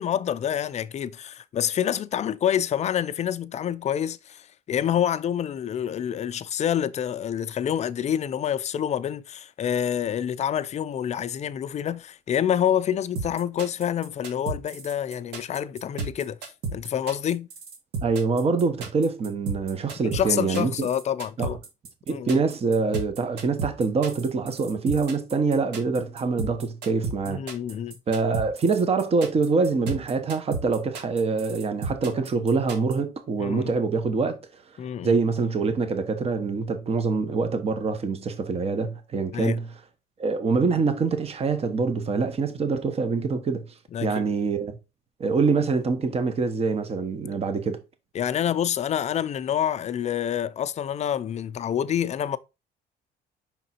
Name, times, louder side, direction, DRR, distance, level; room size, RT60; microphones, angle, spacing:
voice 1, 0.0-16.4 16.7-17.5 20.0-21.6 22.1-22.4 27.3-27.9 33.4-33.7 34.8-35.2 39.3-39.6 43.9-44.2 48.1-52.4, left 9 dB, 40° left, 0.5 m, -27 dB
sound 1, 13.2-33.0, right 4 dB, 80° right, 1.8 m, -33 dB
voice 2, 18.0-20.9 21.4-21.5 22.1-27.4 28.1-34.6 35.0-39.7 40.2-43.6 44.0-44.8 45.2-47.8, right 4 dB, 35° right, 1.1 m, -25 dB
5.8 x 3.7 x 4.3 m
cardioid pair, 110°, 17 cm